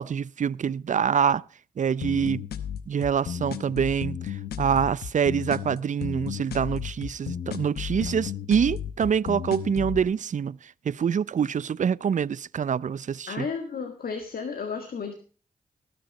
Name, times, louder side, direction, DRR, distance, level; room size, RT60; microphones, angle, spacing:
voice 1, 0.0-1.4 1.8-2.4 2.9-13.5, right 7 dB, 50° right, 0.5 m, -26 dB
sound 1, 2.0-10.0, left 9 dB, 90° left, 0.9 m, -34 dB
voice 2, 13.3-15.1, left 5 dB, 70° left, 1.9 m, -33 dB
18.5 x 6.8 x 5.4 m
supercardioid pair, 45°, 16 cm